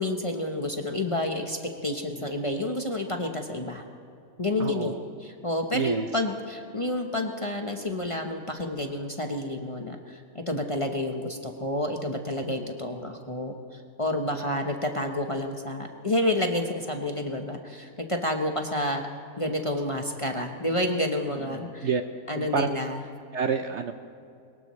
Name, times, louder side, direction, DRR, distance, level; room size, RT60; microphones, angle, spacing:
voice 1, 0.0-3.8 4.4-13.5 14.0-19.1 19.4-21.9 22.3-23.0, left 1 dB, 25° left, 2 dB, 0.9 m, -29 dB
voice 2, 4.6-5.0 5.7-6.1 14.3-14.4 21.5-22.0 22.4-22.7 23.3-23.9, right 6 dB, 60° right, 7 dB, 0.8 m, -29 dB
22.5 x 20.0 x 3.2 m, 2.5 s
omnidirectional pair, 1.6 m